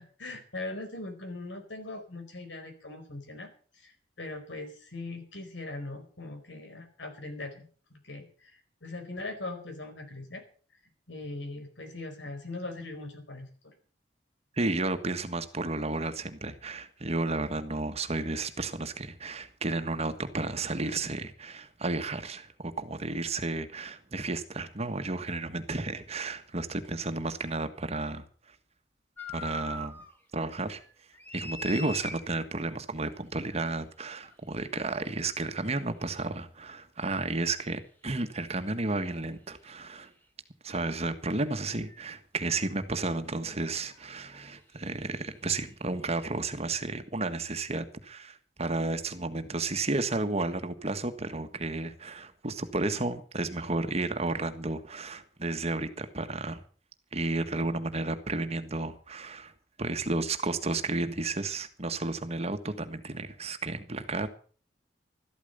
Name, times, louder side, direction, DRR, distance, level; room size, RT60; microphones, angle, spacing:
voice 1, 0.0-3.5 3.8-10.4 11.1-13.7, left 2 dB, 80° left, 4.6 m, -40 dB
voice 2, 14.6-28.2 29.3-30.0 30.3-30.8 31.3-40.1 40.6-56.6 57.1-59.5 59.8-64.3, right 2 dB, 35° right, 1.6 m, -32 dB
sound 1, 29.2-30.1 30.5-32.3 34.2-34.3 37.2-37.3 40.1-40.2 41.8-42.0 43.8-44.0 44.3-44.5, left 1 dB, 10° left, 2.7 m, -41 dB
13.5 x 12.5 x 6.8 m
head